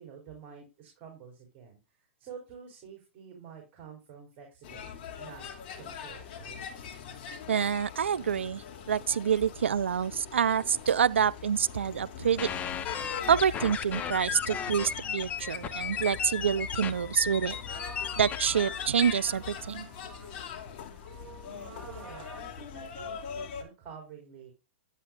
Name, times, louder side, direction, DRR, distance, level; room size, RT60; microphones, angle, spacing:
voice 1, 0.0-5.4 5.7-6.6 21.5-24.5, right 6 dB, 35° right, 4.1 m, -49 dB
sound 1, 4.6-23.6, left 7 dB, 50° left, 2.7 m, -43 dB
voice 2, 7.5-12.5 13.3-17.6 18.2-19.9, right 7 dB, 90° right, 0.5 m, -27 dB
sound 2, 12.4-19.1, left 7 dB, 25° left, 1.0 m, -35 dB
sound 3, 17.4-22.4, right 4 dB, 10° right, 1.9 m, -51 dB
11.5 x 9.0 x 2.5 m
hypercardioid pair, 130°, 6 cm